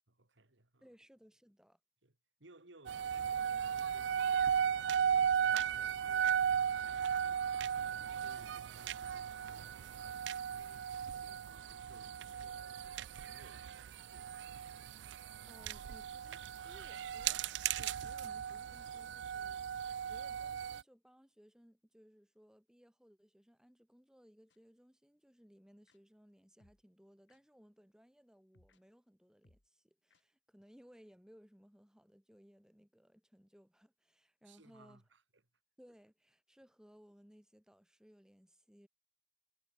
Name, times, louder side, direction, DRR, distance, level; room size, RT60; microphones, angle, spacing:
voice 1, 0.2-0.9 2.0-14.5 34.4-35.4, right 2 dB, 85° right, 2.5 m, -64 dB
voice 2, 0.8-1.8 15.4-17.4 17.8-19.6 20.0-35.0 35.8-38.9, equal, 5° right, 1.3 m, -63 dB
sound 1, 2.9-20.8, right 8 dB, 70° right, 0.3 m, -36 dB
sound 2, 24.5-24.6 25.9-26.0 26.6-26.8 27.3-27.4 28.5-28.8 29.4-29.7 30.1-30.2, left 1 dB, 85° left, 2.7 m, -69 dB
head